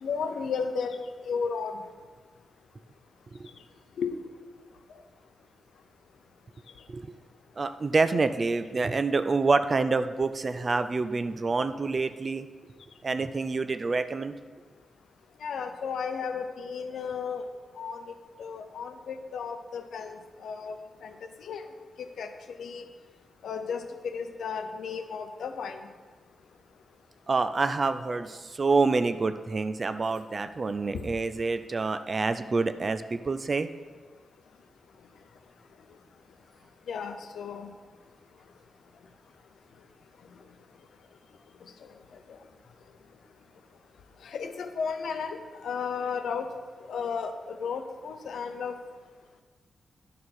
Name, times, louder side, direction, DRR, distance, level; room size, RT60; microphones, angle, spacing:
voice 1, 0.0-1.8 4.0-4.2 15.4-17.5 17.8-20.2 20.4-20.8 21.0-21.1 21.4-21.6 22.0-22.9 23.4-25.9 30.9-31.0 36.9-37.7 42.3-42.4 44.2-46.5 46.9-48.8, left 6 dB, 75° left, 7 dB, 0.7 m, -34 dB
voice 2, 7.6-12.5 13.0-14.3 27.3-33.7, right 3 dB, 30° right, 11 dB, 0.3 m, -27 dB
11.0 x 6.7 x 4.2 m, 1.5 s
wide cardioid pair, 180°, 0 cm